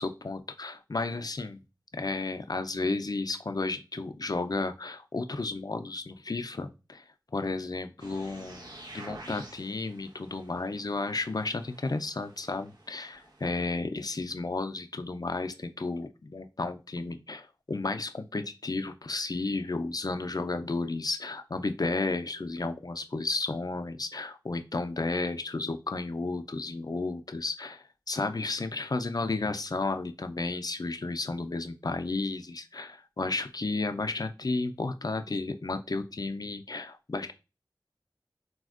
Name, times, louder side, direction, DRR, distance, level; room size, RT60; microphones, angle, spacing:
voice 1, 0.0-1.6 1.9-7.0 7.3-37.3, left 3 dB, 55° left, 9 dB, 0.4 m, -33 dB
sound 1, 8.0-13.5, right 2 dB, 55° right, 1.0 m, -49 dB
4.2 x 2.3 x 2.4 m, 0.28 s
wide cardioid pair, 45°, 8 cm